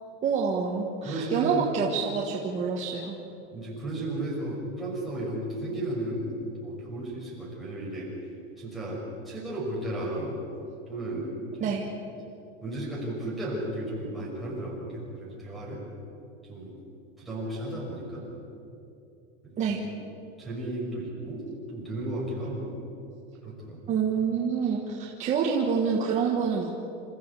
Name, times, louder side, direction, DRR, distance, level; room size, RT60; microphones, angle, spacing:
voice 1, 0.2-3.2 11.6-11.8 19.6-19.8 23.9-26.9, right 6 dB, 20° right, -2 dB, 1.5 m, -27 dB
voice 2, 1.0-1.7 3.5-8.1 8.6-10.4 10.9-11.3 11.6-11.7 12.6-15.8 16.5-16.8 17.2-18.3 19.5-19.8 20.4-22.8 23.4-23.9, right 1 dB, ahead, -4 dB, 5.8 m, -34 dB
27.5 x 14.5 x 8.4 m, 2.7 s
supercardioid pair, 175°, 33 cm